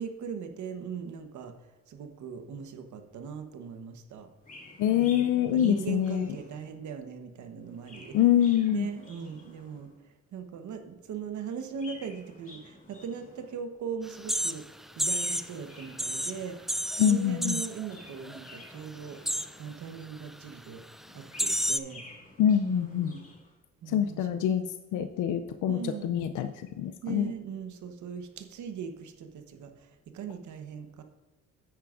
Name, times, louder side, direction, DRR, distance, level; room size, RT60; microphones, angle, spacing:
voice 1, 0.0-1.5 1.9-4.3 4.9-8.2 8.7-9.9 10.3-14.6 15.0-19.3 19.6-20.8 21.1-22.0 22.6-23.2 23.8-24.4 25.7-26.2 27.0-31.0, right 7 dB, 75° right, 7 dB, 1.1 m, -39 dB
Chirp tweet, 4.4-6.9 7.6-10.0 11.5-13.7 15.0-16.9 17.7-19.9 21.0-23.5, left 2 dB, 25° left, 2.7 m, -51 dB
voice 2, 4.8-6.3 8.1-8.9 17.0-17.6 22.4-23.1 23.9-27.3, left 10 dB, 85° left, 9 dB, 0.5 m, -25 dB
sound 1, 14.1-15.6 15.9-17.9 18.2-18.6 18.8-19.6 20.2-20.4 20.9-21.0 21.4-21.8, equal, ahead, 0.3 m, -31 dB
9.5 x 9.4 x 2.5 m, 1.2 s
cardioid pair, 90°, 30 cm